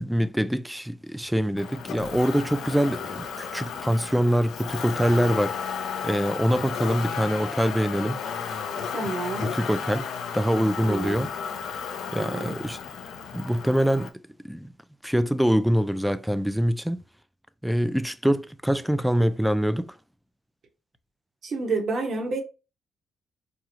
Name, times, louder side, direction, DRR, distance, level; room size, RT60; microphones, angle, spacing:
voice 1, 0.0-8.2 9.4-10.1 10.3-11.3 12.1-12.8 13.3-14.1 14.4-14.7 15.0-17.0 17.6-20.0, equal, 5° right, 0.4 m, -24 dB
Motor vehicle (road), 1.6-14.1, left 7 dB, 75° left, 0.5 m, -34 dB
voice 2, 8.9-9.5 10.8-11.3 12.1-12.6 21.4-22.4, right 3 dB, 60° right, 1.2 m, -29 dB
4.4 x 2.3 x 2.9 m
supercardioid pair, 60°, 0 cm